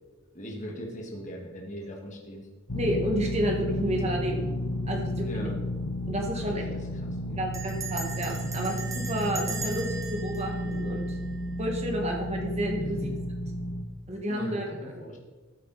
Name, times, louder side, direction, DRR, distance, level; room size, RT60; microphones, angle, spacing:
voice 1, 0.3-2.5 5.2-5.6 6.3-7.5 12.8-13.2 14.3-15.2, equal, 35° left, -1 dB, 1.8 m, -40 dB
sound 1, 2.7-13.8, equal, 90° left, 1.2 m, -32 dB
voice 2, 2.7-4.4 4.9-5.5 6.1-6.6 7.4-11.2 11.6-13.0 14.1-14.6, equal, 30° right, 1 dB, 1.9 m, -30 dB
Bell, 5.4-5.8 6.0-6.1 6.4-6.7 7.5-11.6, right 4 dB, 15° right, 1.0 m, -39 dB
14.0 x 8.3 x 4.2 m, 1.3 s
head